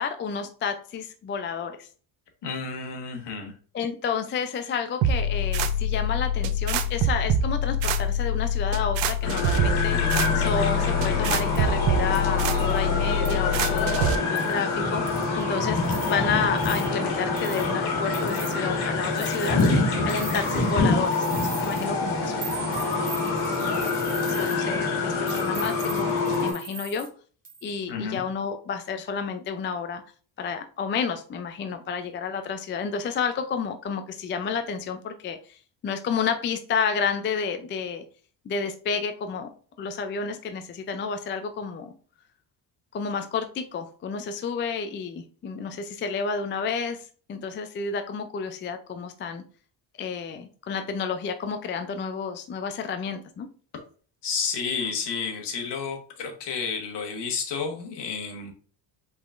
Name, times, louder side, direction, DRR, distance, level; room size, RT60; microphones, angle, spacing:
voice 1, 0.0-1.9 3.7-10.0 10.3-19.6 20.0-22.4 24.3-26.1 26.4-27.1 27.6-30.0 30.4-38.0 38.5-39.5 39.8-41.9 42.9-49.4 50.0-53.5, left 6 dB, 25° left, 7 dB, 0.3 m, -30 dB
voice 2, 2.4-3.5 27.9-28.2 54.2-58.5, left 5 dB, 60° left, 4 dB, 1.3 m, -31 dB
sound 1, 5.0-14.2, left 1 dB, 75° right, 0.6 m, -25 dB
sound 2, 9.2-26.5, left 3 dB, 85° left, 1.6 m, -26 dB
sound 3, 11.5-11.7 12.1-12.3 12.6-12.8 13.2-13.3 13.8-14.0 14.4-14.6 15.1-15.4 15.8-16.1 16.6-16.9 17.4-17.7 18.1-18.6 19.1-19.7 20.1-20.7 21.1-21.9 22.4-24.6 25.3-27.1 27.4-27.8, right 5 dB, 20° right, 0.8 m, -40 dB
4.9 x 3.8 x 2.5 m, 0.42 s
cardioid pair, 110°, 47 cm